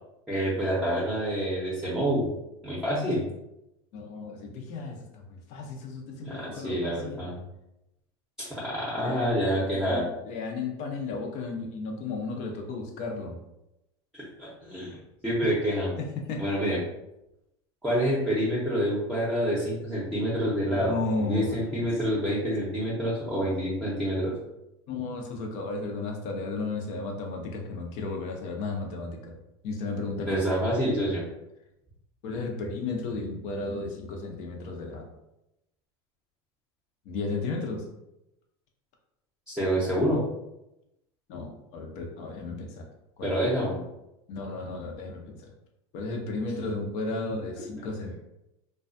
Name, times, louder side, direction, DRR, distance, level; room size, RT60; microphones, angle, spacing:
voice 1, 0.3-2.3 2.6-3.3 6.2-7.4 8.4-10.0 14.1-15.0 15.2-15.9 16.4-16.8 17.8-24.3 30.3-31.2 39.5-40.2 43.2-43.8, equal, ahead, -8 dB, 0.7 m, -27 dB
voice 2, 3.9-7.2 9.0-13.4 16.0-16.4 20.6-21.9 24.9-29.3 29.6-30.4 30.9-31.2 32.2-35.1 37.1-37.8 41.3-42.8 43.2-43.4 44.3-45.5 45.9-48.2, left 3 dB, 55° left, 2 dB, 0.6 m, -34 dB
2.3 x 2.2 x 2.5 m, 0.89 s
supercardioid pair, 110°, 14 cm